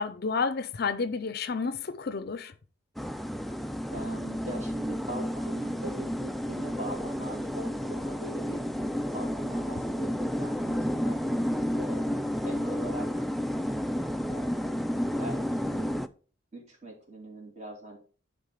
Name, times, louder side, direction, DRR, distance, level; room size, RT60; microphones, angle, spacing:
voice 1, 0.0-2.5, left 4 dB, 50° left, 0.5 m, -30 dB
sound 1, 3.0-16.1, equal, ahead, 0.3 m, -31 dB
voice 2, 3.9-8.6 9.1-11.2 11.7-13.3 14.2-14.8 15.2-15.9 16.5-18.0, right 1 dB, 35° right, 2.8 m, -41 dB
10.5 x 3.9 x 4.9 m
head